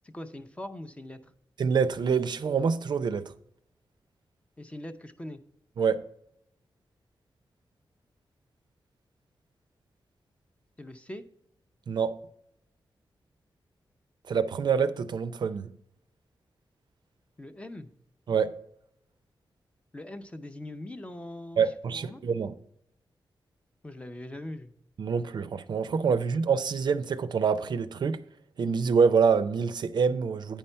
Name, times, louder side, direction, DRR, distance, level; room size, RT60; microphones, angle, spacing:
voice 1, 0.0-1.3 4.6-5.4 10.8-11.2 17.4-17.9 19.9-21.6 21.9-22.2 23.8-24.7, left 1 dB, 15° left, 0.5 m, -41 dB
voice 2, 1.6-3.3 5.8-6.1 11.9-12.2 14.3-15.7 18.3-18.6 21.6-22.5 25.0-28.2 28.6-30.6, right 6 dB, 60° right, 0.4 m, -26 dB
9.0 x 5.5 x 4.4 m
wide cardioid pair, 155°, 8 cm